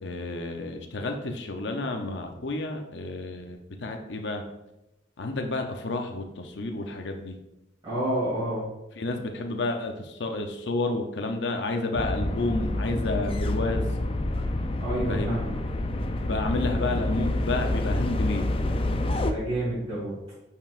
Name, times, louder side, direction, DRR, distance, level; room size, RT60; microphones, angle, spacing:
voice 1, 0.0-4.4 5.2-7.3 9.0-13.9 15.1-15.4 16.2-18.5, left 2 dB, 70° left, 4 dB, 0.6 m, -30 dB
voice 2, 7.8-8.6 14.8-15.5 19.2-20.1, right 1 dB, 25° right, -10 dB, 2.2 m, -29 dB
sound 1, 12.0-19.3, left 1 dB, 30° left, 0.4 m, -28 dB
8.8 x 4.7 x 2.5 m, 0.93 s
head